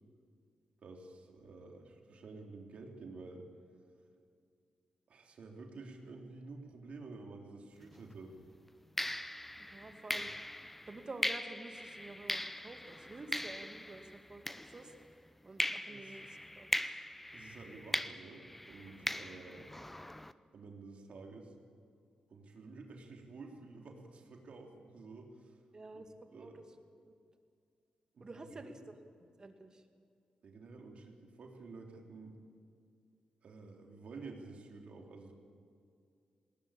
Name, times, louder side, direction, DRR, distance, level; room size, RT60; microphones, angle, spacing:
voice 1, 0.8-3.5 5.1-8.4 10.1-10.2 15.9-16.3 17.3-19.7 20.5-21.5 22.3-25.6 25.9-26.1 26.3-26.6 28.2-28.9 30.4-32.4 33.4-35.3, right 3 dB, 65° right, 2 dB, 3.3 m, -51 dB
sound 1, 7.8-8.0 9.0-15.1 15.6-20.3, left 1 dB, 10° left, 0.7 m, -40 dB
voice 2, 9.6-10.3 10.9-14.4 14.7-14.9 15.4-16.3 16.6-17.0 25.7-26.6 28.2-28.9 29.2-29.8, right 2 dB, 35° right, 6 dB, 2.2 m, -49 dB
19.5 x 19.5 x 8.6 m, 2.3 s
cardioid pair, 90°, 2 cm